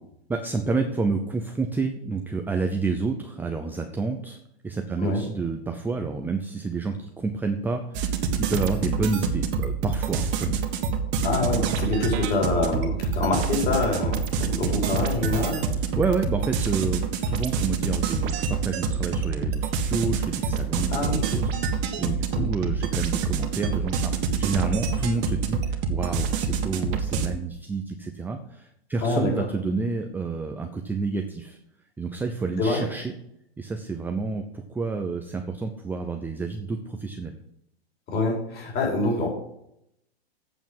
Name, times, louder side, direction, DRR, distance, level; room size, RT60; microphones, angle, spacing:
voice 1, 0.3-4.4 4.6-10.6 15.7-24.1 24.4-31.6 32.0-33.1 33.6-37.3, right 4 dB, 5° right, 5 dB, 0.6 m, -29 dB
sound 1, 7.9-27.3, right 5 dB, 35° right, 1.6 m, -26 dB
voice 2, 11.2-15.6 20.9-21.2 22.3-22.4 29.0-29.3 32.6-32.8 38.1-39.3, left 2 dB, 30° left, -1 dB, 4.6 m, -25 dB
8.4 x 7.0 x 7.5 m, 0.76 s
hypercardioid pair, 130°, 32 cm